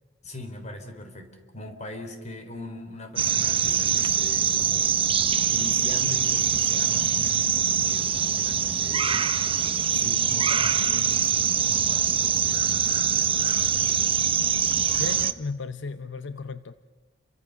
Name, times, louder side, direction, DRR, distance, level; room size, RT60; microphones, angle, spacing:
voice 1, 0.2-5.0 5.5-9.3 9.9-14.2, left 1 dB, 35° left, 6 dB, 3.7 m, -41 dB
sound 1, 3.2-15.3, right 8 dB, 30° right, 0.9 m, -23 dB
voice 2, 15.0-16.7, left 4 dB, 65° left, 12 dB, 0.7 m, -34 dB
30.0 x 24.0 x 6.6 m, 1.3 s
head